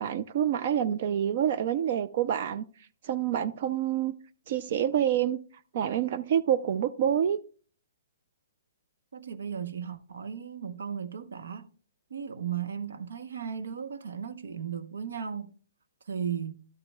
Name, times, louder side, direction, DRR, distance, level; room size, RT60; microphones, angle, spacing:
voice 1, 0.0-2.6 3.0-4.1 4.5-5.4 5.7-7.4, right 10 dB, 40° right, 0.3 m, -27 dB
voice 2, 9.1-11.7 12.1-15.5 16.1-16.5, right 7 dB, 85° right, 0.8 m, -36 dB
12.5 x 7.1 x 2.2 m
hypercardioid pair, 170°, 0 cm